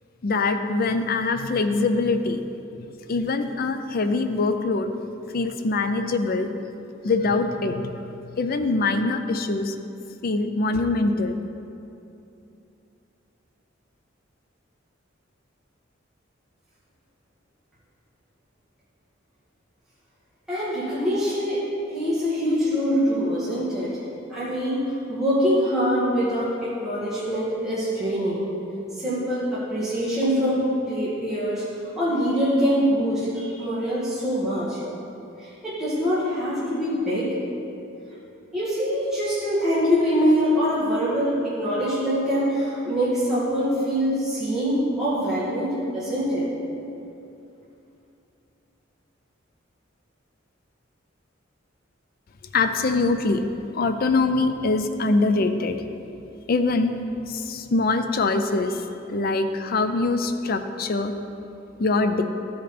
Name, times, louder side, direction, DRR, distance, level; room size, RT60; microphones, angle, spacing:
voice 1, 0.2-2.4 2.8-4.9 5.3-6.5 7.0-9.8 10.2-11.4 52.5-53.4 53.7-55.8 56.5-56.9 57.3-61.1 61.8-62.2, left 3 dB, 50° left, 8 dB, 0.5 m, -23 dB
voice 2, 20.5-21.6 21.9-24.0 24.3-28.4 29.0-31.6 32.0-34.8 35.4-37.3 38.5-46.5, equal, 5° right, -12 dB, 2.0 m, -24 dB
13.5 x 5.1 x 4.3 m, 2.8 s
head